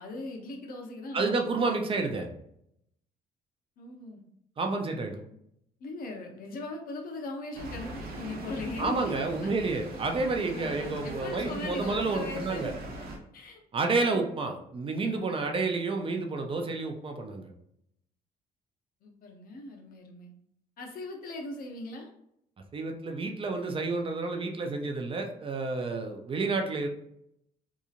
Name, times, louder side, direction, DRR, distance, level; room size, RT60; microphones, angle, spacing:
voice 1, 0.0-1.7 3.8-4.2 5.8-9.5 10.5-12.7 13.3-13.6 19.0-20.3 20.8-22.1, left 2 dB, 60° left, 1 dB, 0.7 m, -39 dB
voice 2, 1.1-2.3 4.6-5.2 8.8-12.7 13.7-17.5 22.7-26.9, right 3 dB, 35° right, 3 dB, 0.5 m, -30 dB
sound 1, 7.5-13.2, right 1 dB, 70° right, 0.7 m, -41 dB
2.8 x 2.4 x 2.4 m, 0.75 s
cardioid pair, 100°, 17 cm